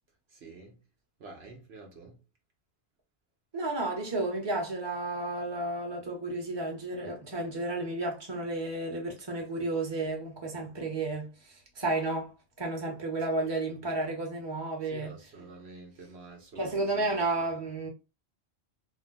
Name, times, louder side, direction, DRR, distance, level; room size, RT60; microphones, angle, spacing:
voice 1, 0.3-0.8 1.2-2.2 14.8-17.5, right 3 dB, 70° right, 1.0 m, -48 dB
voice 2, 3.5-11.3 11.8-15.1 16.6-17.9, right 2 dB, 25° right, 1.0 m, -32 dB
2.7 x 2.2 x 3.9 m
omnidirectional pair, 1.1 m